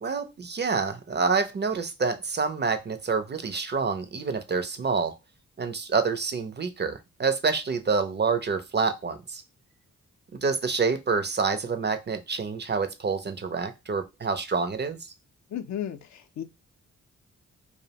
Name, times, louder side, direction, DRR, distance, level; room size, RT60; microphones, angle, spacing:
voice 1, 0.0-5.1 5.6-9.4 10.3-15.0, right 5 dB, 35° right, 0.4 m, -27 dB
voice 2, 15.5-16.0 16.4-16.5, left 10 dB, 60° left, 0.4 m, -32 dB
2.5 x 2.0 x 2.8 m
cardioid pair, 60°, 31 cm